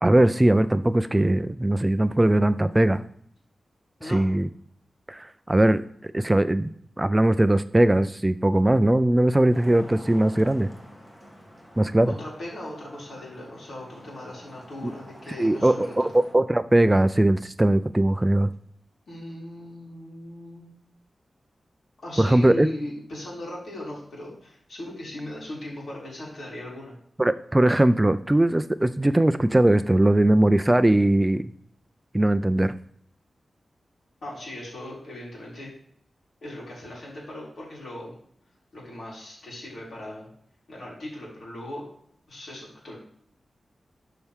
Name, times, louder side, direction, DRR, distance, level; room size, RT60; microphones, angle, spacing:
voice 1, 0.0-3.0 4.0-4.5 5.1-6.7 7.0-10.7 11.8-12.2 14.8-14.9 15.4-18.5 22.2-22.7 27.2-31.4 32.1-32.7, right 1 dB, 15° right, 12 dB, 0.3 m, -20 dB
Traffic noise roadway noise, 9.5-16.3, equal, 10° left, 1.7 m, -47 dB
voice 2, 12.0-16.1 19.1-20.7 22.0-26.9 34.2-35.7 36.4-38.2 38.7-40.3 40.7-41.8 42.3-43.0, left 1 dB, 70° left, -4 dB, 4.1 m, -38 dB
12.5 x 5.6 x 3.6 m, 0.67 s
wide cardioid pair, 140°, 0 cm